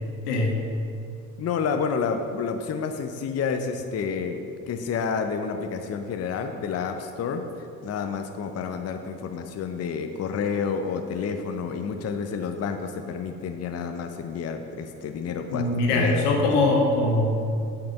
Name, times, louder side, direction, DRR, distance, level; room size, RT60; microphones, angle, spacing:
voice 1, 0.3-0.6 15.5-17.5, left 2 dB, 80° left, 0 dB, 1.3 m, -22 dB
voice 2, 1.4-16.5, left 6 dB, 35° left, 6 dB, 0.6 m, -29 dB
6.7 x 5.8 x 5.3 m, 2.6 s
hypercardioid pair, 55°, 46 cm